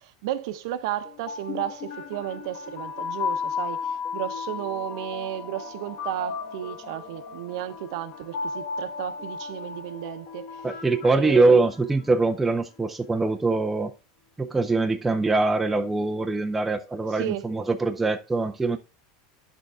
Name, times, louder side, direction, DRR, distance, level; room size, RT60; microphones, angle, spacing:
voice 1, 0.0-10.6 11.2-11.6 17.1-17.4, right 12 dB, 60° right, 0.8 m, -33 dB
sound 1, 1.0-12.1, left 5 dB, 35° left, 1.5 m, -35 dB
voice 2, 10.6-13.9 14.4-18.8, right 3 dB, 5° right, 0.5 m, -23 dB
9.2 x 6.3 x 3.5 m
supercardioid pair, 180°, 3 cm